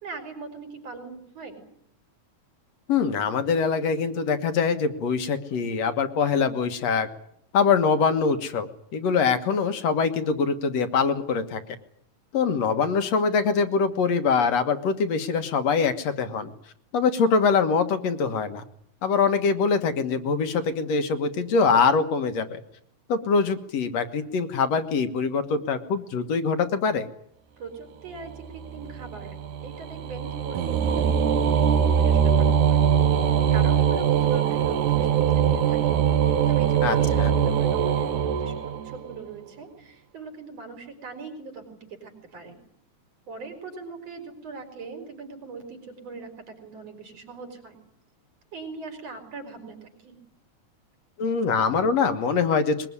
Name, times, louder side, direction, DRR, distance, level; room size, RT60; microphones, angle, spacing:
voice 1, 0.0-1.6 27.6-29.4 29.6-32.9 33.5-36.0 36.5-42.6 43.3-47.8 48.5-50.2, right 4 dB, 55° right, 5 dB, 5.5 m, -41 dB
voice 2, 2.9-7.1 7.5-11.6 12.3-16.5 16.9-18.6 19.0-22.6 23.1-27.1 36.8-37.3 51.2-52.9, left 5 dB, 65° left, 8 dB, 2.5 m, -23 dB
sound 1, 28.3-39.2, right 8 dB, 85° right, 2.9 m, -22 dB
21.5 x 21.5 x 9.7 m, 0.71 s
omnidirectional pair, 3.4 m